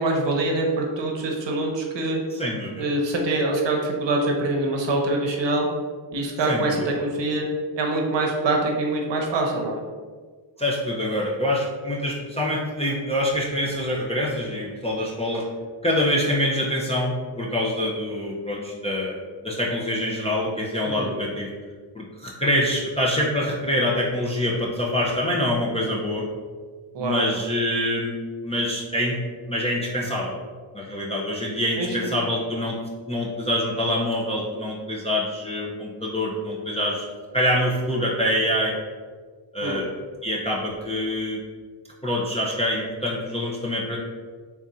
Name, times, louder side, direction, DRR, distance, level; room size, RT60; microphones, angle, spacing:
voice 1, 0.0-2.2 2.8-5.7 6.1-7.5 7.8-9.8 21.0-21.1 26.9-27.2 31.8-32.0 39.6-39.8, right 2 dB, 65° right, 1 dB, 0.8 m, -24 dB
voice 2, 2.3-2.9 6.5-6.8 10.6-15.5 15.8-21.5 21.9-26.2 27.0-28.1 28.4-29.2 29.5-30.3 30.7-32.8 33.1-37.1 37.3-38.7 39.5-39.9 40.2-41.4 42.0-44.0, left 1 dB, 15° left, -4 dB, 0.4 m, -25 dB
3.5 x 2.5 x 4.1 m, 1.5 s
wide cardioid pair, 155°, 47 cm